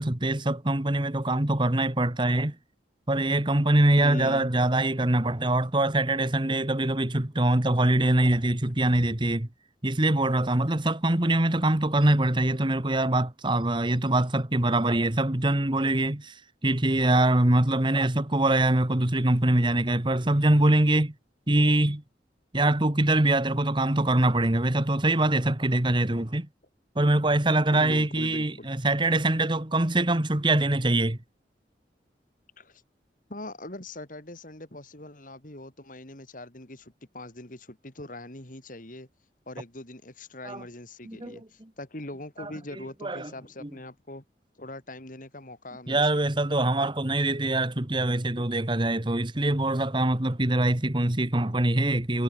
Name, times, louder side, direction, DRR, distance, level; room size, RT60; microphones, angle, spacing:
voice 1, 0.0-2.6 3.1-9.5 9.8-21.1 21.5-22.0 22.5-26.5 26.9-31.2 40.4-40.6 41.0-41.4 42.4-42.5 43.0-43.3 43.6-43.7 45.9-52.2, right 1 dB, 25° right, 1.5 m, -24 dB
voice 2, 4.0-4.5 27.7-28.7 32.6-32.8 33.3-39.1 39.5-44.2 44.6-46.1 48.3-48.4, left 1 dB, 50° left, 3.6 m, -41 dB
head